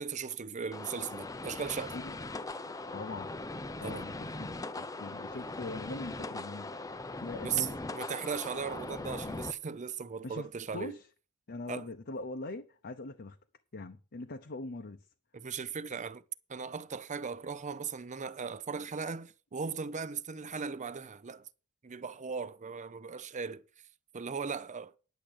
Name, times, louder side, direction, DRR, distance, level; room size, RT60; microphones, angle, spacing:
voice 1, 0.0-1.9 3.8-4.1 7.4-11.0 11.7-11.9 15.3-16.2 16.5-21.5 21.8-23.6 24.1-24.9, right 6 dB, 35° right, 0.6 m, -38 dB
sound 1, 0.7-9.5, left 2 dB, 15° left, 0.6 m, -40 dB
voice 2, 2.9-3.3 3.8-6.9 7.2-7.7 10.2-10.5 10.7-11.1 11.5-13.4 13.7-15.0, left 2 dB, 50° left, 0.8 m, -42 dB
10.5 x 7.3 x 6.4 m
head